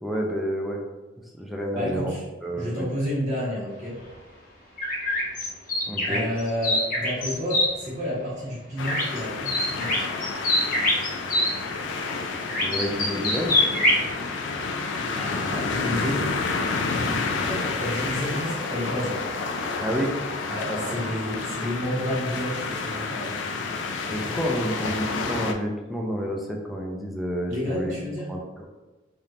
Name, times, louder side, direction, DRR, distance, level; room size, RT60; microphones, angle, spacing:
voice 1, 0.0-0.8 1.4-2.1 2.4-2.9 5.9-6.3 12.6-13.6 19.8-20.1 20.7-21.1 24.1-27.9 28.3-28.6, equal, ahead, -1 dB, 0.4 m, -29 dB
voice 2, 1.7-2.2 2.6-3.9 6.1-10.1 15.2-16.3 16.9-19.2 20.5-23.3 27.5-28.3, equal, 40° right, -7 dB, 1.3 m, -30 dB
sound 1, 4.8-7.7 8.8-9.2 9.5-11.5 12.5-14.0, left 1 dB, 45° left, 0.8 m, -24 dB
sound 2, 8.8-25.5, left 4 dB, 80° left, 0.4 m, -30 dB
3.4 x 2.8 x 2.4 m, 1.2 s
head